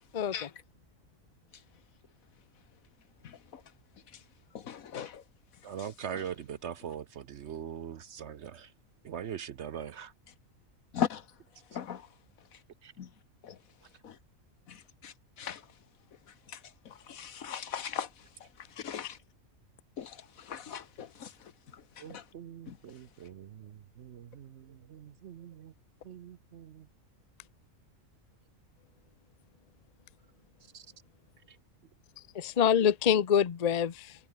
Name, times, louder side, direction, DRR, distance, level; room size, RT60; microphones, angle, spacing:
voice 1, 0.1-0.5 32.3-34.1, left 8 dB, 40° left, 0.7 m, -26 dB
voice 2, 4.6-5.2 10.9-11.2 11.7-12.0 13.0-13.1 13.4-13.5 14.0-14.1 14.7-14.8 15.0-15.1 15.4-15.6 17.1-18.1 18.8-19.2 20.0-20.2 20.5-21.3 22.1-22.2 22.7-22.8, left 8 dB, 85° left, 1.6 m, -36 dB
voice 3, 5.6-8.7 9.0-10.1 22.0-25.7 26.0-26.9 30.7-30.9, right 8 dB, 60° right, 0.9 m, -42 dB
omnidirectional pair, 1.4 m